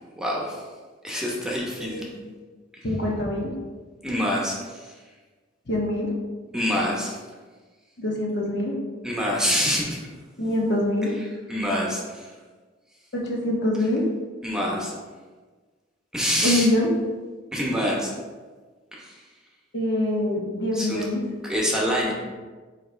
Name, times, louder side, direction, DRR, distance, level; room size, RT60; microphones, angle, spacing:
voice 1, 0.2-0.6 1.0-2.1 4.0-4.9 6.5-7.2 9.0-10.0 11.5-12.3 14.4-14.9 16.1-16.7 17.5-18.1 18.9-19.2 20.7-21.1 21.4-22.1, equal, 5° right, -4 dB, 1.0 m, -26 dB
voice 2, 1.8-2.3 2.8-3.5 5.7-6.1 8.0-8.8 10.4-11.1 13.1-14.1 16.4-16.9 19.7-21.2, left 1 dB, 60° left, -2 dB, 1.2 m, -24 dB
9.1 x 3.1 x 3.3 m, 1.4 s
head